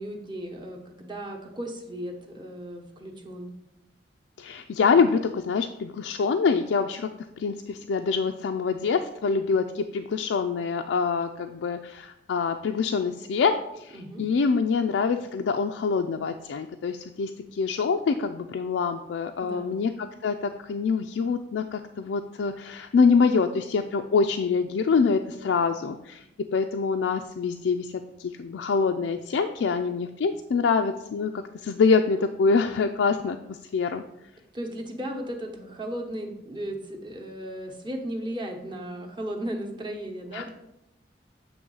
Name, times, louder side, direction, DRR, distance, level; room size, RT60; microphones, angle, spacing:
voice 1, 0.0-3.5 13.9-14.2 19.4-19.8 34.5-40.5, right 1 dB, 25° right, 1 dB, 0.9 m, -35 dB
voice 2, 4.4-7.1 7.4-27.9 28.2-34.0 40.3-40.5, left 5 dB, 85° left, 5 dB, 0.4 m, -25 dB
7.8 x 3.1 x 5.4 m, 0.87 s
head